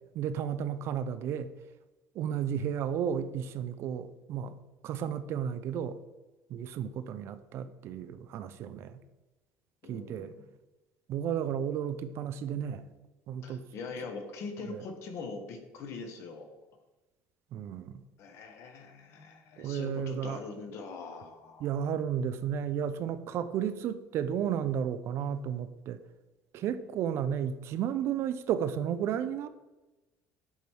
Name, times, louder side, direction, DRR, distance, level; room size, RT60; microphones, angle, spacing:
voice 1, 0.1-1.5 2.2-4.5 4.8-5.9 6.5-9.0 9.9-10.3 11.1-12.9 13.3-13.6 14.7-14.8 17.5-18.0 19.6-20.4 21.6-26.0 26.5-29.5, right 8 dB, 55° right, 12 dB, 0.4 m, -33 dB
voice 2, 9.8-10.5 13.4-16.5 18.2-21.7, left 4 dB, 55° left, 5 dB, 1.2 m, -42 dB
8.0 x 3.4 x 4.5 m, 1.1 s
cardioid pair, 135°, 5 cm